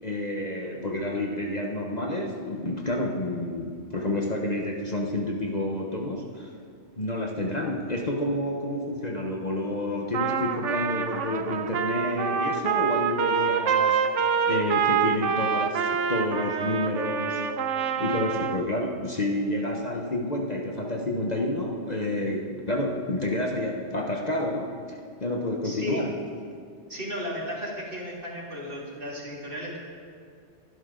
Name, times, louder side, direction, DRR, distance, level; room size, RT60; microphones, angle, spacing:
voice 1, 0.0-6.5 7.0-14.0 14.4-17.4 18.0-26.1, left 1 dB, 35° left, 0 dB, 1.3 m, -29 dB
Trumpet, 10.1-18.7, right 7 dB, 80° right, 1.1 m, -26 dB
voice 2, 25.6-26.0 26.9-29.8, equal, 45° right, -4 dB, 3.2 m, -34 dB
23.5 x 11.5 x 3.9 m, 2.3 s
omnidirectional pair, 1.2 m